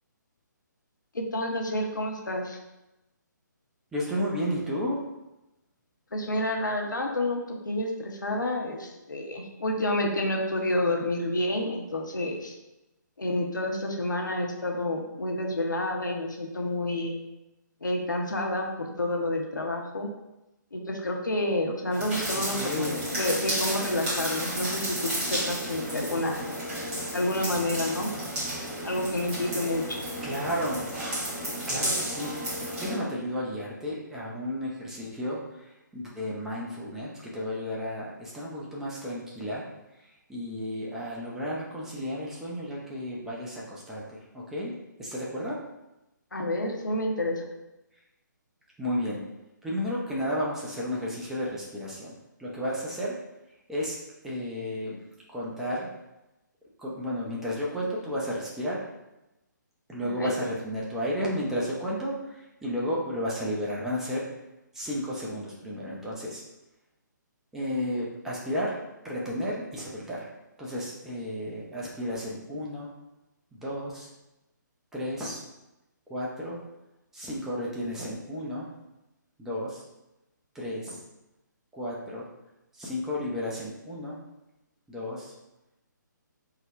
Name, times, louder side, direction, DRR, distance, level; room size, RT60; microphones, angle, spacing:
voice 1, 1.1-2.6 6.1-12.6 13.2-17.2 17.8-20.1 20.7-26.5 27.1-28.1 28.8-30.0 46.3-47.4 60.2-60.4, left 1 dB, 70° left, 1 dB, 0.8 m, -29 dB
voice 2, 3.9-5.0 22.3-23.0 30.2-30.9 31.7-39.7 40.0-44.7 45.0-45.6 48.8-49.2 49.6-53.2 53.7-54.0 54.2-55.0 55.3-55.9 56.8-58.8 59.9-64.3 64.7-66.4 67.5-70.3 70.6-72.9 73.5-74.1 74.9-75.4 76.1-76.6 77.1-78.7 79.4-79.8 80.5-81.0 81.7-82.3 82.7-84.2 84.9-85.3, equal, 5° right, -5 dB, 0.5 m, -33 dB
sound 1, 21.9-33.0, right 1 dB, 25° right, 1.4 m, -32 dB
3.7 x 2.1 x 4.2 m, 0.96 s
figure-of-eight pair, 140°, 10 cm